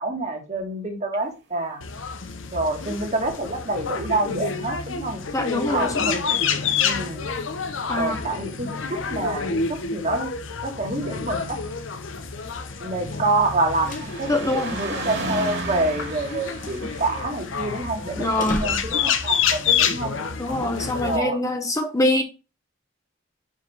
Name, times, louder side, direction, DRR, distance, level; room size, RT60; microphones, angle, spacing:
voice 1, 0.0-1.8 2.5-6.3 6.8-7.3 8.0-10.3 10.6-11.6 12.8-20.1 21.0-21.5, right 2 dB, 40° right, 1.7 m, -27 dB
sound 1, 1.8-21.2, left 6 dB, 85° left, 0.8 m, -28 dB
voice 2, 5.3-6.0 7.9-8.2 14.3-14.8 18.2-18.7 20.4-22.2, left 1 dB, 15° left, 0.8 m, -24 dB
sound 2, 12.3-19.0 19.9-20.0, right 3 dB, 60° right, 2.2 m, -35 dB
sound 3, 13.6-19.3, left 1 dB, 45° left, 1.3 m, -39 dB
5.4 x 4.9 x 5.4 m
head